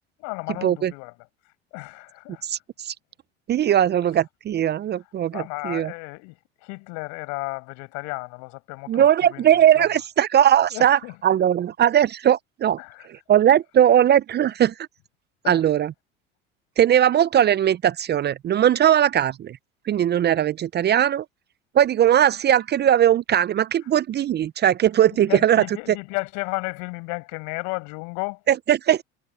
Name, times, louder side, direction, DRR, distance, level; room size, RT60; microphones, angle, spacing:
voice 1, 0.2-1.1 1.7-2.4 5.3-9.9 10.7-11.2 12.8-13.1 15.4-15.6 25.1-28.4, left 32 dB, 70° left, 6.1 m, -33 dB
voice 2, 3.5-5.9 8.9-12.8 13.3-14.7 15.5-15.9 16.8-19.6 19.9-21.2 21.7-25.6 28.5-29.0, right 10 dB, 35° right, 0.6 m, -19 dB
hypercardioid pair, 80°, 31 cm